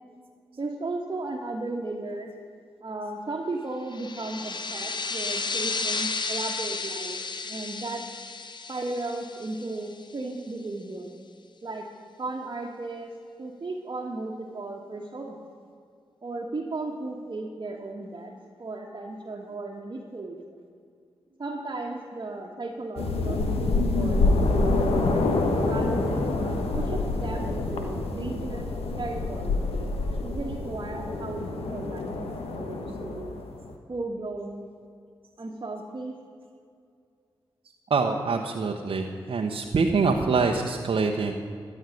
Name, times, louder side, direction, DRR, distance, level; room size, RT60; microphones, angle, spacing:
voice 1, 0.6-2.3 2.8-7.2 7.4-8.0 8.7-11.1 11.6-11.9 12.2-13.1 13.4-15.4 16.2-18.3 18.6-20.4 21.4-25.2 25.7-28.7 29.0-29.6 30.2-33.4 33.9-34.7 35.4-36.1, right 2 dB, 45° right, -1 dB, 1.4 m, -35 dB
sound 1, 3.9-10.2, left 4 dB, 50° left, 1.1 m, -33 dB
sound 2, 23.0-33.7, left 2 dB, 80° left, 1.3 m, -27 dB
voice 2, 37.9-41.3, right 4 dB, 65° right, 1 dB, 0.9 m, -25 dB
13.0 x 6.5 x 9.2 m, 2.3 s
supercardioid pair, 40°, 10 cm